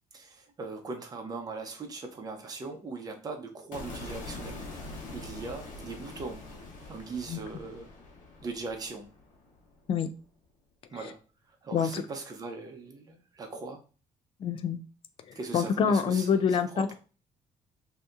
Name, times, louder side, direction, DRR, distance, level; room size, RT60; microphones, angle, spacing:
voice 1, 0.1-4.6 5.1-6.5 6.9-7.9 8.4-9.1 10.9-11.2 11.6-13.8 15.3-17.0, right 3 dB, 30° right, 4 dB, 0.8 m, -40 dB
sound 1, 3.7-9.9, left 2 dB, 70° left, 1.1 m, -44 dB
voice 2, 11.7-12.1 14.4-14.8 15.3-17.0, left 6 dB, 40° left, 10 dB, 0.4 m, -27 dB
2.8 x 2.7 x 3.4 m, 0.35 s
cardioid pair, 155°, 14 cm